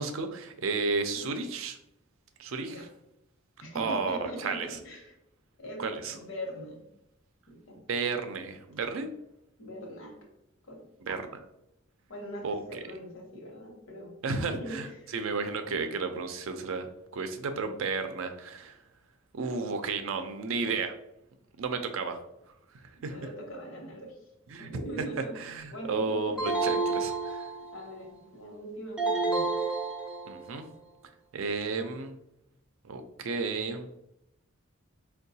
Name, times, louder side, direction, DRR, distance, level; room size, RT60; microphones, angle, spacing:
voice 1, 0.0-1.8 2.4-2.9 3.7-4.7 5.8-6.1 7.9-9.1 11.1-11.2 12.4-12.8 14.2-14.9 15.1-16.9 17.1-18.8 19.3-20.9 21.6-22.2 23.0-23.2 24.5-24.7 25.4-27.5 30.3-30.7 31.3-32.2 32.8-33.9, right 4 dB, 75° right, 7 dB, 0.4 m, -32 dB
voice 2, 3.6-5.1 5.6-6.9 7.5-8.0 9.6-10.1 10.7-11.2 12.1-15.1 23.0-24.2 24.6-25.4 25.7-26.4 27.7-29.5, equal, 75° left, 0 dB, 1.0 m, -41 dB
sound 1, 26.4-27.9 29.0-30.6, right 3 dB, 5° right, 0.4 m, -30 dB
4.5 x 2.2 x 2.7 m, 0.83 s
head